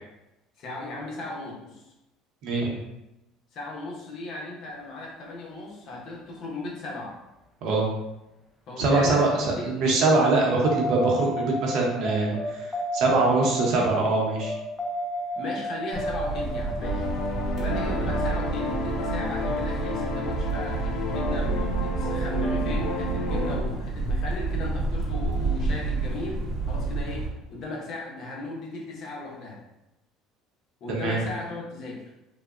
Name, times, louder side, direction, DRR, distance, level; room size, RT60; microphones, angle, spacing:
voice 1, 0.6-1.9 3.5-7.2 8.7-9.3 9.7-9.8 15.4-17.1 17.6-29.6 30.8-32.1, left 2 dB, 50° left, -2 dB, 0.8 m, -36 dB
voice 2, 8.8-14.5 30.9-31.2, right 3 dB, 65° right, -1 dB, 0.8 m, -23 dB
sound 1, 10.6-20.8, equal, 5° left, 0.5 m, -33 dB
sound 2, 15.9-27.3, right 3 dB, 30° right, 1.0 m, -29 dB
sound 3, 16.8-23.6, left 2 dB, 75° left, 0.5 m, -31 dB
3.5 x 2.1 x 2.4 m, 0.92 s
cardioid pair, 125°, 0 cm